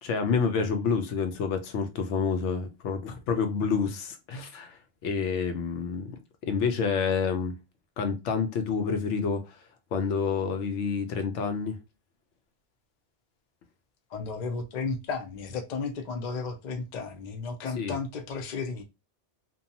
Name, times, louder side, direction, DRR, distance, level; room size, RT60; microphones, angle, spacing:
voice 1, 0.0-6.2 6.5-7.5 8.0-9.4 9.9-11.8 17.8-18.0, left 5 dB, 80° left, 0.9 m, -28 dB
voice 2, 14.1-18.8, left 4 dB, 55° left, 0.5 m, -33 dB
2.6 x 2.2 x 2.7 m
omnidirectional pair, 1.2 m